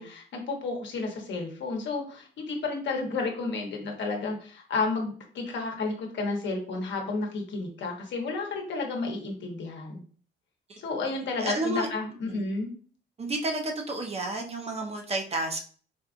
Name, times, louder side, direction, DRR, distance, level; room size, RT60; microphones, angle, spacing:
voice 1, 0.0-10.0 10.8-12.7, left 3 dB, 65° left, 1 dB, 1.0 m, -32 dB
voice 2, 11.4-11.9 12.3-12.5 13.2-15.6, right 2 dB, 30° right, 2 dB, 0.7 m, -31 dB
4.3 x 2.4 x 2.4 m, 0.43 s
cardioid pair, 90°, 20 cm